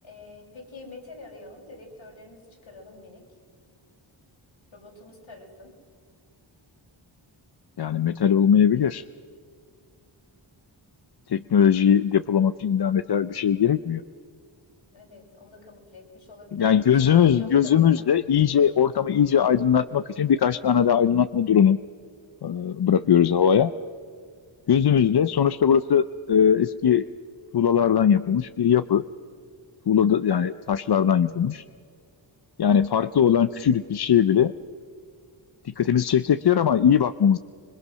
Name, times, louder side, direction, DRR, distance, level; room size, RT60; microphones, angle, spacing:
voice 1, 0.0-3.2 4.7-5.7 14.9-18.0, left 2 dB, 70° left, -1 dB, 6.4 m, -45 dB
voice 2, 7.8-9.0 11.3-14.0 16.5-21.8 22.4-23.7 24.7-27.1 27.5-29.0 29.9-31.6 32.6-34.5 35.8-37.4, left 8 dB, 50° left, 13 dB, 0.7 m, -20 dB
26.5 x 22.5 x 6.3 m, 2.1 s
cardioid pair, 65°, 49 cm